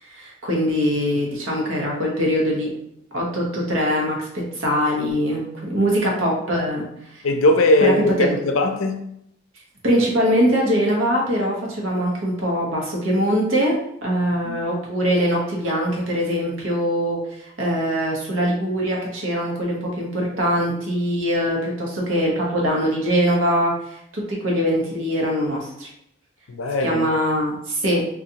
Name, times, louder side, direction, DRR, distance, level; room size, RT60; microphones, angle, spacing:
voice 1, 0.0-2.7 3.1-4.3 4.5-6.9 7.1-7.2 7.8-8.3 9.8-25.9 26.8-28.0, equal, 75° right, 1.0 m, -22 dB
voice 2, 7.2-9.0 14.4-14.5 26.5-27.0, left 1 dB, 85° left, 0.5 m, -19 dB
3.8 x 2.5 x 2.8 m
head